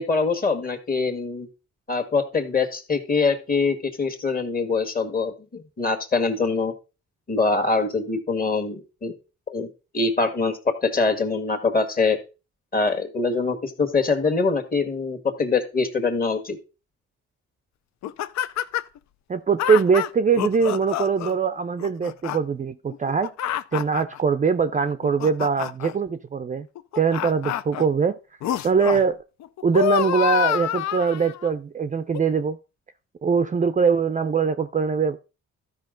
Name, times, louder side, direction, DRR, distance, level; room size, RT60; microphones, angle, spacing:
voice 1, 0.0-1.5 1.9-6.7 7.3-9.1 9.5-9.7 9.9-12.2 12.7-16.6, left 4 dB, 30° left, 1.7 m, -24 dB
sound 1, 18.0-19.0 19.6-21.3 21.8-22.4 22.9-24.2 24.9-25.9 26.8-27.8 28.4-29.0 29.4-31.5 32.1-32.2, left 11 dB, 65° left, 0.5 m, -27 dB
voice 2, 19.3-23.3 23.7-26.7 27.0-28.2 28.6-29.2 29.6-32.6 33.2-35.2, right 5 dB, 25° right, 0.5 m, -22 dB
13.0 x 5.2 x 3.8 m
cardioid pair, 90°, 30 cm